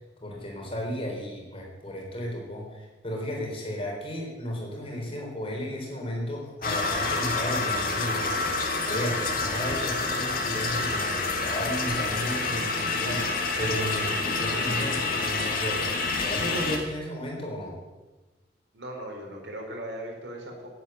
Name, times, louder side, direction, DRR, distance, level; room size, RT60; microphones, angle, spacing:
voice 1, 0.2-17.8, equal, 30° left, 0 dB, 3.9 m, -34 dB
sound 1, 6.6-16.8, left 3 dB, 50° left, 2.1 m, -28 dB
voice 2, 18.7-20.7, right 1 dB, 85° right, 1 dB, 4.4 m, -38 dB
12.0 x 9.5 x 8.9 m, 1.2 s
head